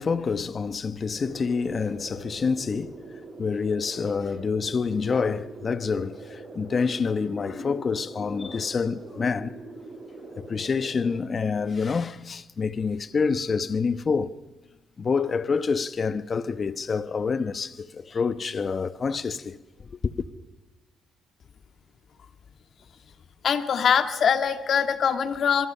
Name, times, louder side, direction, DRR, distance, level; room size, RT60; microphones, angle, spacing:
voice 1, 0.0-3.0 3.4-9.5 10.4-14.3 15.0-20.1, left 5 dB, 40° left, 1.1 m, -27 dB
sound 1, 1.2-11.2, right 2 dB, 40° right, 5.7 m, -43 dB
voice 2, 23.4-25.7, left 7 dB, 60° left, 1.9 m, -23 dB
26.0 x 23.5 x 5.6 m
cardioid pair, 90°, 0 cm